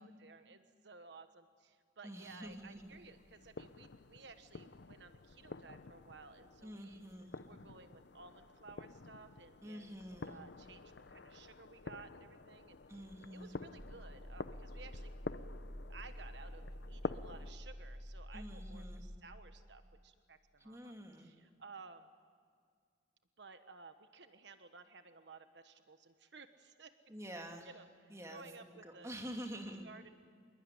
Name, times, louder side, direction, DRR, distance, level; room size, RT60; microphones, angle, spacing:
voice 1, 0.0-7.0 7.5-10.0 10.2-13.1 13.3-15.1 15.9-22.1 23.4-26.9 27.6-29.1 29.4-29.5 29.8-30.1, right 4 dB, 75° right, 9 dB, 1.2 m, -56 dB
voice 2, 2.0-2.9 6.6-7.4 9.6-10.3 12.9-13.6 18.3-19.0 20.6-21.3 27.1-27.7 28.1-28.4 28.8-29.9, equal, 15° right, 3 dB, 2.6 m, -47 dB
sound 1, 2.4-17.5, left 3 dB, 70° left, 0.7 m, -49 dB
sound 2, 13.8-19.2, equal, 40° right, 3.9 m, -48 dB
26.5 x 21.5 x 9.9 m, 2.1 s
head